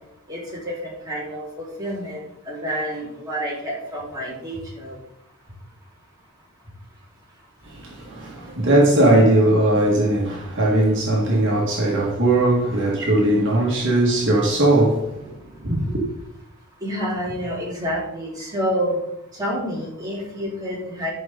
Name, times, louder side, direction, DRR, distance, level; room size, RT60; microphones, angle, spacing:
voice 1, 0.3-5.0 9.7-9.8 15.7-15.8 16.8-19.0 19.4-21.1, equal, 15° right, 3.7 m, -28 dB
voice 2, 7.7-15.3, right 1 dB, 55° right, 1.8 m, -19 dB
12.0 x 5.5 x 3.8 m
head